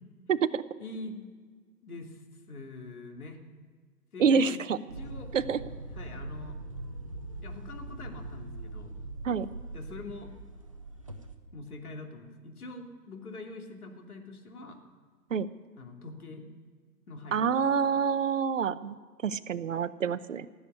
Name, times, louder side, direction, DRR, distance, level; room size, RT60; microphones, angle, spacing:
voice 1, 0.3-0.6 4.2-4.8 5.3-5.6 9.2-9.5 15.3-15.5 17.3-19.0 19.2-20.5, right 6 dB, 50° right, 14 dB, 0.8 m, -27 dB
voice 2, 0.8-1.2 1.8-2.2 2.5-3.4 4.1-5.3 5.9-6.5 7.4-8.9 9.7-10.3 11.5-14.8 15.8-16.5 17.1-17.4, left 2 dB, 60° left, 3 dB, 3.0 m, -44 dB
sound 1, 4.9-11.4, right 2 dB, 20° right, 0.6 m, -42 dB
16.5 x 8.0 x 10.0 m, 1.5 s
hypercardioid pair, 155°, 49 cm